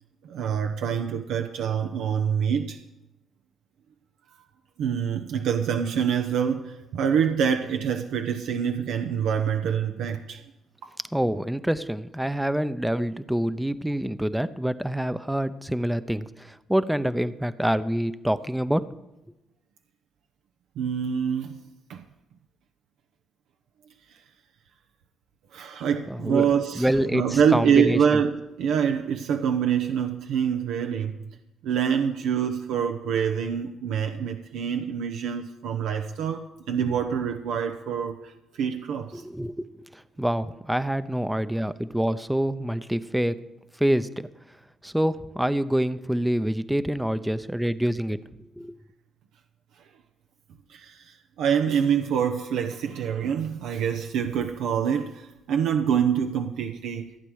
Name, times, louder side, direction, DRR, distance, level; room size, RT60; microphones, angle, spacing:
voice 1, 0.2-2.8 4.8-10.4 20.8-21.6 21.9-22.0 25.5-31.2 31.6-38.3 38.6-39.2 50.7-57.1, right 7 dB, 85° right, 5 dB, 0.9 m, -26 dB
voice 2, 11.1-18.9 26.1-28.2 39.1-43.4 43.8-44.3 44.8-48.2 48.6-48.7, right 1 dB, 5° right, 13 dB, 0.7 m, -26 dB
15.5 x 9.0 x 6.4 m, 0.93 s
cardioid pair, 90°, 0 cm